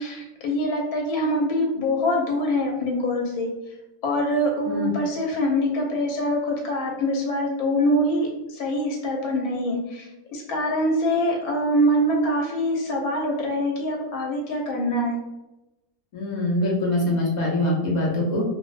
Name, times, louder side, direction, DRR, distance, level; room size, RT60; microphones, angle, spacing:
voice 1, 0.0-3.5 4.0-15.1, equal, 90° left, 0 dB, 1.1 m, -24 dB
voice 2, 16.1-18.4, left 1 dB, 50° left, -5 dB, 0.5 m, -23 dB
2.5 x 2.0 x 2.4 m, 0.97 s
omnidirectional pair, 1.5 m